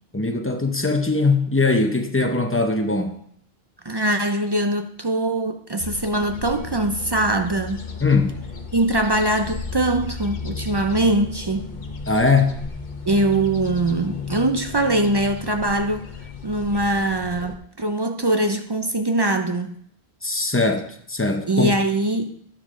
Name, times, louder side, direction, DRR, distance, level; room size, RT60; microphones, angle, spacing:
voice 1, 0.1-3.1 8.0-8.3 12.1-12.6 20.2-21.7, left 3 dB, 15° left, 0.7 m, -21 dB
voice 2, 3.8-7.8 8.7-11.7 13.0-16.1 16.4-19.7 21.5-22.3, right 2 dB, 35° right, 0.4 m, -22 dB
sound 1, 5.8-17.5, left 5 dB, 50° left, 1.0 m, -35 dB
10.5 x 7.1 x 3.7 m
omnidirectional pair, 1.1 m